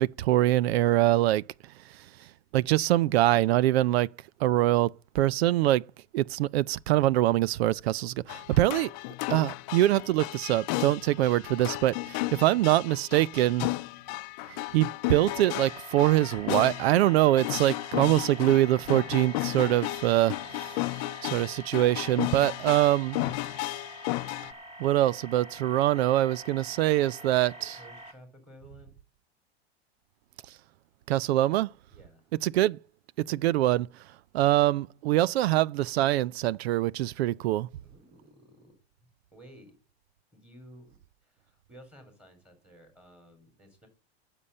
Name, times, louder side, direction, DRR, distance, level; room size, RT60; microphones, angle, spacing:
voice 1, 0.0-1.4 2.5-4.1 4.4-5.8 6.1-8.9 9.3-13.7 14.5-20.7 21.2-23.2 24.8-27.8 31.1-31.7 32.4-32.8 33.2-33.9 34.3-37.7, right 15 dB, 80° right, 0.6 m, -24 dB
sound 1, 8.3-24.5, left 20 dB, 45° left, 0.7 m, -34 dB
sound 2, 15.1-28.1, right 1 dB, 20° right, 2.0 m, -46 dB
voice 2, 27.2-28.9 31.9-32.3 37.8-38.7 39.3-39.8 40.3-43.9, equal, 5° right, 4.5 m, -54 dB
9.7 x 7.0 x 8.7 m
supercardioid pair, 150°, 31 cm